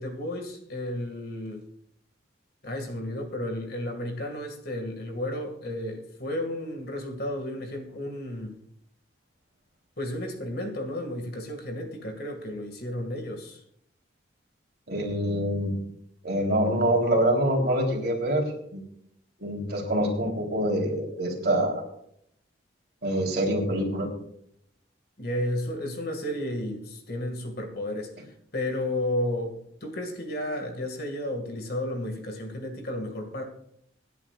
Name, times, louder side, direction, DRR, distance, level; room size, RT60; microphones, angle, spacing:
voice 1, 0.0-1.6 2.6-8.5 10.0-13.6 25.2-28.1 28.5-29.5 29.8-33.4, left 1 dB, 50° left, 2.2 m, -32 dB
voice 2, 14.9-15.8 16.2-18.4 18.7-18.8 19.4-21.8 23.0-24.1, right 1 dB, 55° right, 3.7 m, -25 dB
25.5 x 10.5 x 2.5 m
head